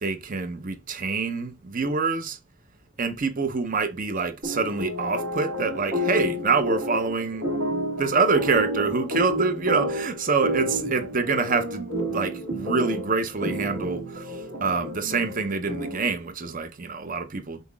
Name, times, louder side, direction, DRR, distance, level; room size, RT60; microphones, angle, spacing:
voice 1, 0.0-2.4 3.0-7.5 8.0-14.2 14.6-17.6, right 4 dB, 35° right, 0.6 m, -26 dB
sound 1, 4.4-16.2, equal, 65° right, 1.7 m, -30 dB
5.6 x 4.0 x 2.3 m
head